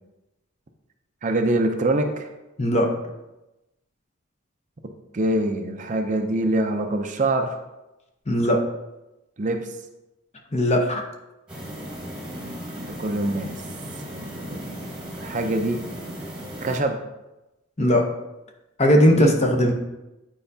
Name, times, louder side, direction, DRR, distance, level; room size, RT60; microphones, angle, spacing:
voice 1, 1.2-2.3 5.1-7.6 9.4-9.7 12.8-13.6 14.3-14.8 15.2-15.8 16.6-17.0 19.1-19.4, right 2 dB, 35° right, 5 dB, 0.5 m, -24 dB
voice 2, 8.3-8.6 10.5-11.0 17.8-18.0 18.8-19.7, equal, 30° left, 2 dB, 0.7 m, -18 dB
sound 1, 11.5-16.8, equal, 5° right, 1.2 m, -36 dB
8.8 x 4.6 x 2.7 m, 0.98 s
head